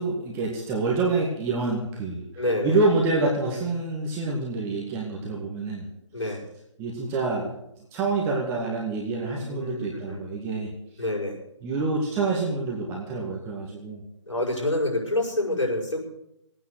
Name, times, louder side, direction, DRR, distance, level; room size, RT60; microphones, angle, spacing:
voice 1, 0.0-5.9 6.2-6.3 6.8-7.5 7.9-10.7 10.9-11.0 11.6-14.0, right 3 dB, 15° right, -3 dB, 2.1 m, -27 dB
voice 2, 2.4-2.8 6.1-6.4 9.2-10.2 11.0-11.4 14.3-16.0, left 1 dB, 85° left, -1 dB, 5.8 m, -27 dB
18.5 x 9.3 x 6.7 m, 0.81 s
figure-of-eight pair, 155°, 16 cm